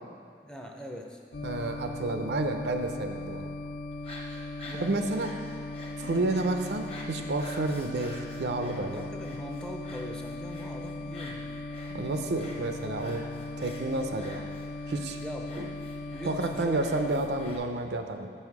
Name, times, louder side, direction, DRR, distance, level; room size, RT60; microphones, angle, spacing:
voice 1, 0.4-1.2 4.6-5.1 8.9-11.6 15.2-15.8 16.1-17.1, equal, 5° left, 1 dB, 0.4 m, -41 dB
sound 1, 1.3-17.5, left 2 dB, 75° left, 0.5 m, -38 dB
voice 2, 1.4-3.5 4.8-5.3 6.0-9.0 11.9-13.3 13.6-14.4 14.9-15.2 15.6-15.7 16.2-18.3, right 2 dB, 75° right, 6 dB, 0.5 m, -30 dB
sound 2, 3.9-17.6, left 1 dB, 35° left, 0.8 m, -48 dB
7.0 x 5.5 x 4.7 m, 2.2 s
head